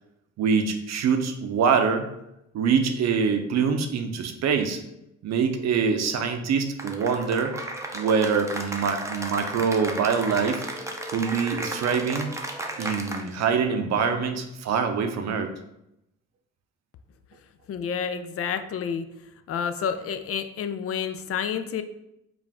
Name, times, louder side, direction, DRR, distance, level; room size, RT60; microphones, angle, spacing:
voice 1, 0.4-2.1 2.5-4.8 5.2-7.5 7.9-10.6 11.1-12.3 12.8-15.5, right 6 dB, 60° right, 6 dB, 0.6 m, -24 dB
Cheering / Applause, 6.8-13.5, right 1 dB, 10° right, 0.5 m, -34 dB
voice 2, 17.7-19.1 19.5-21.8, left 7 dB, 50° left, 9 dB, 0.4 m, -29 dB
5.0 x 2.5 x 3.5 m, 0.84 s
cardioid pair, 90°, 30 cm